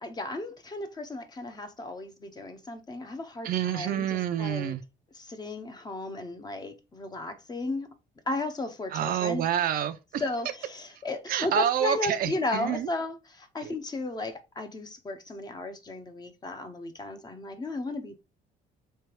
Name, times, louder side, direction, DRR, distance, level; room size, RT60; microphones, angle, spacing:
voice 1, 0.0-4.7 5.1-7.9 8.3-9.5 10.2-18.2, left 2 dB, 25° left, 0.8 m, -34 dB
voice 2, 3.4-4.8 8.9-10.2 11.3-12.9 13.6-13.7, right 10 dB, 60° right, 0.6 m, -28 dB
3.4 x 3.4 x 4.6 m
cardioid pair, 110°, 17 cm